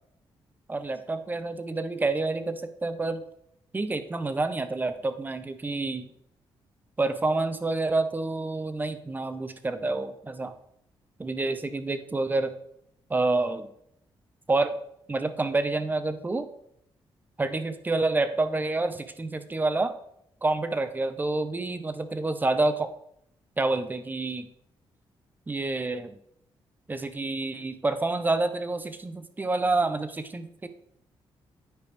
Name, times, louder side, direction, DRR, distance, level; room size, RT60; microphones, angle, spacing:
voice 1, 0.7-3.2 3.7-6.1 7.0-10.5 11.2-12.5 13.1-13.7 14.5-14.7 15.1-16.5 17.4-19.9 20.4-22.9 23.6-24.5 25.5-26.1 26.9-30.7, right 2 dB, 20° right, 11 dB, 0.6 m, -28 dB
9.5 x 4.9 x 3.4 m, 0.72 s
cardioid pair, 100°, 10 cm